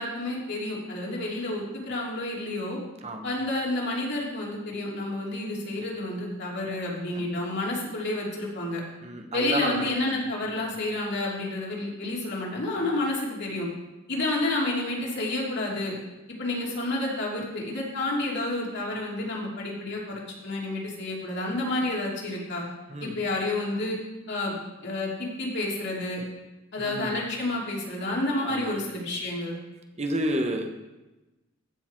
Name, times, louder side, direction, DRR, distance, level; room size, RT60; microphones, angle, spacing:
voice 1, 0.0-2.8 3.2-8.8 9.3-13.7 14.1-15.9 16.4-22.6 23.0-24.0 24.3-24.5 24.8-26.2 26.7-29.6, left 2 dB, 55° left, -3 dB, 2.9 m, -30 dB
voice 2, 3.0-3.4 7.2-7.3 9.0-10.3 10.6-10.7 22.9-23.2 26.8-27.3 28.4-28.8 30.0-30.7, right 1 dB, 30° right, 5 dB, 1.0 m, -31 dB
15.0 x 6.6 x 4.5 m, 1.1 s
head